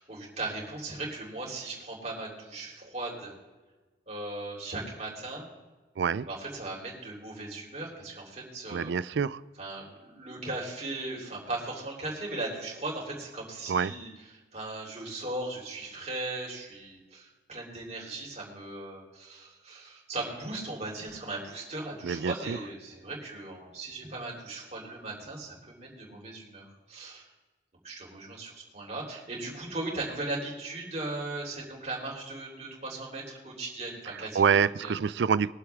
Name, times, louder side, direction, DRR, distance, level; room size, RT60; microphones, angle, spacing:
voice 1, 0.0-3.3 4.1-5.4 6.2-8.9 9.6-14.1 14.5-27.3 27.8-34.4 34.8-34.9, right 2 dB, 35° right, 3.9 m, -38 dB
voice 2, 6.0-6.3 8.7-9.4 13.7-13.9 22.0-22.6 34.1-35.5, right 6 dB, 70° right, 0.4 m, -26 dB
23.0 x 7.8 x 3.6 m
head